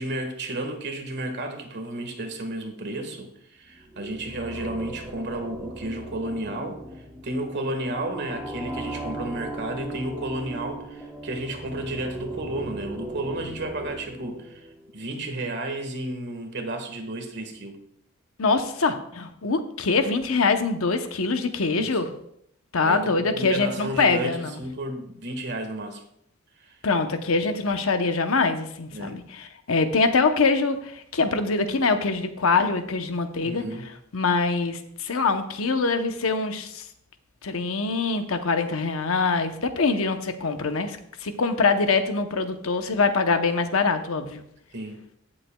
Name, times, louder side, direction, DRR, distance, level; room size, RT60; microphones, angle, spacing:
voice 1, 0.0-6.8 7.2-14.7 14.9-17.8 21.7-22.0 22.8-26.0 26.6-26.8 28.9-29.1 33.4-33.8 44.7-45.0, right 1 dB, 55° right, 5 dB, 1.6 m, -32 dB
sound 1, 3.7-14.9, right 2 dB, ahead, 1.0 m, -38 dB
voice 2, 18.4-22.1 22.7-24.6 26.8-33.6 34.1-36.9 37.4-44.4, left 4 dB, 75° left, 8 dB, 0.8 m, -24 dB
16.0 x 7.4 x 2.3 m, 0.71 s
head